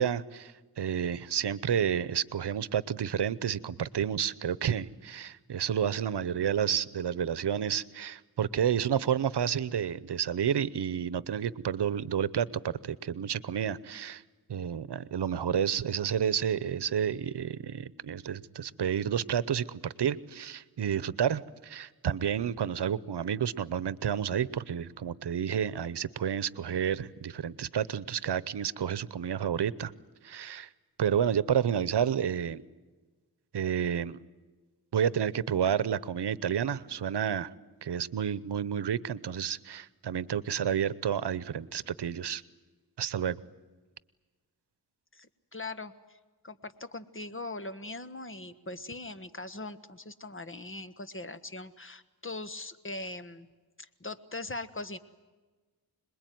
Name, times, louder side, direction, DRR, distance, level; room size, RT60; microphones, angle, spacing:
voice 1, 0.0-14.2 14.5-29.9 30.2-30.7 31.0-32.6 33.5-34.2 34.9-37.5 37.8-42.4 43.0-43.4, right 8 dB, 90° right, 18 dB, 0.9 m, -30 dB
voice 2, 45.1-46.2 46.4-53.5 53.8-55.0, left 2 dB, 30° left, 12 dB, 1.5 m, -41 dB
26.5 x 21.0 x 9.3 m, 1.3 s
wide cardioid pair, 70°, 39 cm